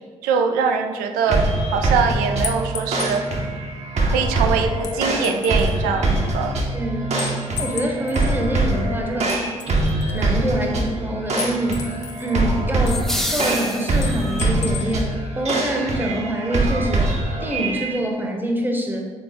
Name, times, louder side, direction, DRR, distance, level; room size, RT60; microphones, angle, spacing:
voice 1, 0.2-1.4 1.7-3.2 4.1-6.6, right 6 dB, 75° right, 5 dB, 0.4 m, -22 dB
sound 1, 1.3-18.0, right 2 dB, 45° right, 0.8 m, -23 dB
sound 2, 2.4-3.2 4.8-5.8 7.2-8.4 9.3-10.2 11.4-12.4 12.9-13.6 14.0-15.0, left 7 dB, 55° left, 0.5 m, -33 dB
voice 2, 6.7-7.3 7.6-9.4 10.1-17.1 17.4-19.1, right 1 dB, 15° right, 2 dB, 0.9 m, -25 dB
sound 3, 12.9-14.4, equal, 5° left, 0.5 m, -28 dB
3.7 x 3.6 x 3.5 m, 1.5 s
hypercardioid pair, 45°, 15 cm